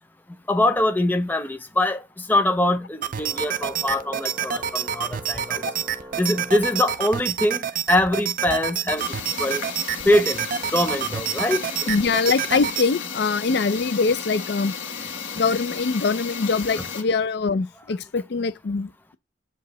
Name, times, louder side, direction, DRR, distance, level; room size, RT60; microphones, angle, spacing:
voice 1, 0.5-5.7 6.2-9.1 9.4-9.6 10.0-11.9, left 1 dB, 10° left, 0.5 m, -23 dB
sound 1, 3.0-12.9, right 9 dB, 45° right, 0.4 m, -28 dB
Organ, 3.2-7.7, equal, 20° right, 1.0 m, -43 dB
sound 2, 9.0-17.0, left 6 dB, 90° left, 1.3 m, -34 dB
voice 2, 11.9-14.7 15.3-19.2, left 4 dB, 60° left, 0.4 m, -23 dB
7.0 x 4.7 x 3.1 m
head